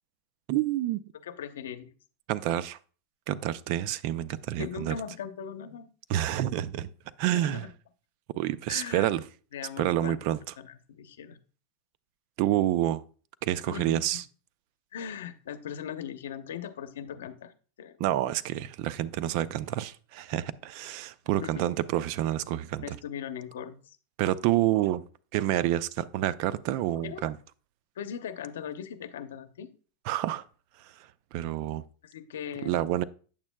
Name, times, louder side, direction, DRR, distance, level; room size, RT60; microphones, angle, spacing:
voice 1, 0.5-1.0 2.3-2.8 3.3-5.0 6.1-6.9 7.2-7.6 8.3-9.2 9.8-10.4 12.4-13.0 13.4-14.2 18.0-23.0 24.2-25.0 25.3-27.4 30.1-30.4 31.3-31.8 32.6-33.0, right 13 dB, 55° right, 0.4 m, -28 dB
voice 2, 1.2-1.9 4.6-5.9 7.3-7.7 8.7-9.1 9.5-10.2 10.6-11.4 13.7-14.1 14.9-17.5 17.8-18.0 21.4-21.7 22.8-24.0 27.0-27.2 28.0-29.7 32.0-32.8, left 8 dB, 90° left, 0.7 m, -39 dB
8.7 x 7.1 x 2.2 m
supercardioid pair, 135°, 0 cm